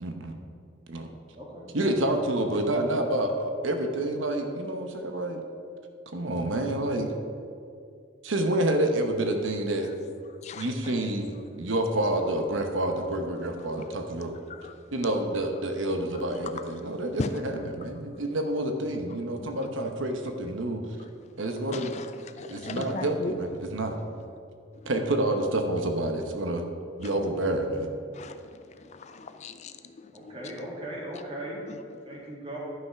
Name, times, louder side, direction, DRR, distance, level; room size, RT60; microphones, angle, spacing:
voice 1, 0.0-0.3 0.9-1.1 1.7-5.4 6.1-7.1 8.2-9.9 10.5-14.3 14.9-20.8 21.4-21.9 22.5-24.0 24.9-26.6 27.0-27.9, right 1 dB, 85° right, 5 dB, 0.9 m, -28 dB
voice 2, 1.4-1.7 30.1-31.6 32.0-32.6, right 1 dB, 30° right, -4 dB, 2.3 m, -38 dB
voice 3, 10.4-10.9 13.8-13.9 14.5-14.7 17.2-17.3 17.6-17.7 19.4-19.5 21.7-23.3 28.1-30.5 31.7-31.8 32.1-32.2, left 3 dB, 35° left, 9 dB, 0.4 m, -38 dB
11.5 x 5.8 x 5.7 m, 2.4 s
head